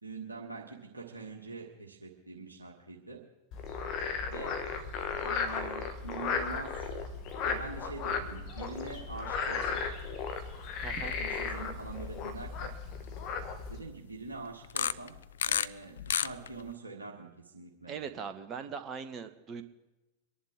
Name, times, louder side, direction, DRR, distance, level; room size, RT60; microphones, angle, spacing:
voice 1, 0.0-3.2 4.3-4.6 5.2-6.9 7.4-9.8 11.0-12.7 13.7-15.2 15.4-17.9, right 3 dB, 80° right, -1 dB, 1.5 m, -44 dB
Frog, 3.5-13.8, left 5 dB, 40° left, 1.7 m, -35 dB
voice 2, 10.8-11.2 17.9-19.6, right 6 dB, 30° right, 8 dB, 1.4 m, -40 dB
sound 1, 10.9-11.2 11.6-11.8 12.4-12.5 14.6-15.7 16.0-16.7, left 9 dB, 65° left, 0.4 m, -30 dB
25.0 x 11.0 x 3.7 m, 1.0 s
figure-of-eight pair, 90°, 0 cm